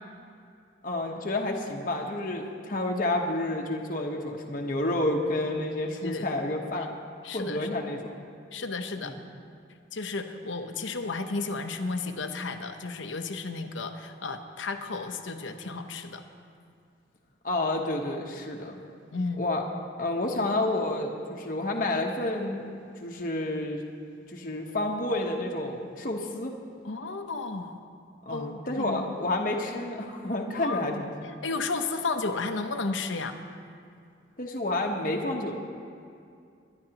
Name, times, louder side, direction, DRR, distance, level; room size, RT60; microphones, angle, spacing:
voice 1, 0.8-7.0 7.3-8.1 9.0-9.2 17.4-18.8 19.4-19.6 20.0-22.6 23.0-23.8 24.3-26.5 28.3-31.1 34.4-35.5, left 2 dB, 45° left, 1 dB, 1.1 m, -30 dB
voice 2, 7.2-7.7 8.5-9.1 9.9-16.2 19.1-19.4 26.8-27.8 28.3-29.1 30.5-31.0 31.4-33.4, left 3 dB, 80° left, 6 dB, 0.9 m, -33 dB
24.0 x 11.0 x 2.9 m, 2.4 s
head